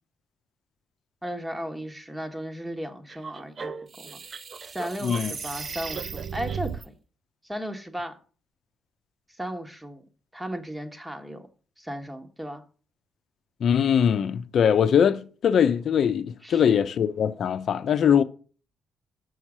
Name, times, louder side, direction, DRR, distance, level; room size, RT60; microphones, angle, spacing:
voice 1, 1.2-6.8 7.4-8.2 9.4-10.0 10.3-11.5 11.8-12.6 16.4-16.6, equal, 10° right, 1.4 m, -36 dB
sound 1, 3.1-6.8, right 6 dB, 40° right, 0.5 m, -35 dB
voice 2, 5.0-5.3 13.6-18.2, left 8 dB, 60° left, 0.7 m, -22 dB
6.5 x 6.4 x 6.1 m
cardioid pair, 90°, 0 cm